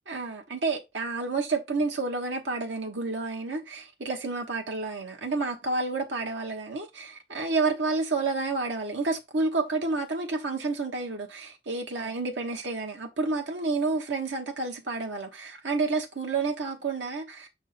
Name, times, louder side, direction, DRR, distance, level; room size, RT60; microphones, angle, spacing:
voice 1, 0.1-17.5, right 3 dB, 85° right, 1.1 m, -30 dB
6.4 x 3.7 x 4.2 m
head